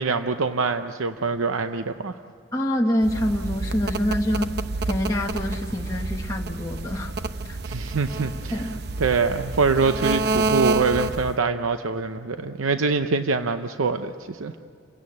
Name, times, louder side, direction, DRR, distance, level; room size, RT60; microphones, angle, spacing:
voice 1, 0.0-2.2 7.6-8.7 9.0-14.5, right 4 dB, 90° right, 8 dB, 0.7 m, -24 dB
voice 2, 2.5-4.6 4.9-7.1 7.5-7.6 8.5-8.8, left 1 dB, 15° left, -1 dB, 1.0 m, -26 dB
sound 1, 3.0-11.4, right 3 dB, 50° right, 0.8 m, -29 dB
28.5 x 17.0 x 8.6 m, 2.6 s
head